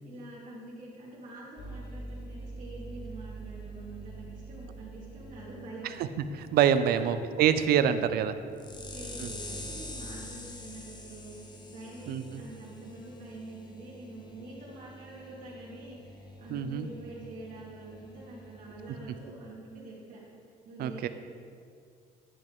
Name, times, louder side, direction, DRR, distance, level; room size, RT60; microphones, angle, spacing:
voice 1, 0.0-5.9 6.7-7.1 8.8-11.3 11.7-20.2 20.6-21.1, right 2 dB, 50° right, -7 dB, 2.1 m, -46 dB
sound 1, 1.6-19.2, equal, 25° left, 1.0 m, -46 dB
voice 2, 6.3-8.3 9.2-9.3 12.1-12.4 16.5-16.9 20.8-21.1, right 9 dB, 65° right, 11 dB, 0.5 m, -26 dB
10.5 x 5.3 x 3.6 m, 2.3 s
cardioid pair, 110°, 17 cm